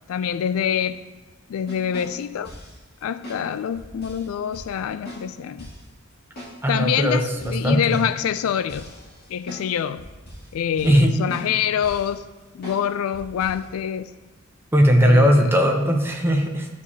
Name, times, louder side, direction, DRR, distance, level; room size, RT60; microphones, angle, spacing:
voice 1, 0.1-1.0 1.5-2.5 3.0-5.7 6.7-8.9 9.3-10.0 10.5-12.3 12.5-14.1 15.0-15.5, left 8 dB, 70° left, 0.3 m, -25 dB
sound 1, 1.7-2.8 3.2-3.4 3.7-4.3 4.5-4.7 5.0-5.2 5.6-5.8 6.4-6.5 6.9-7.0 7.4-9.7 10.0-10.5 10.8-11.0 11.3-11.5 11.8-12.1 12.6-12.8 13.1-13.6, equal, 45° left, 2.4 m, -40 dB
voice 2, 6.6-8.0 10.8-11.4 14.7-16.7, equal, 10° right, 0.8 m, -18 dB
14.0 x 4.8 x 2.8 m
head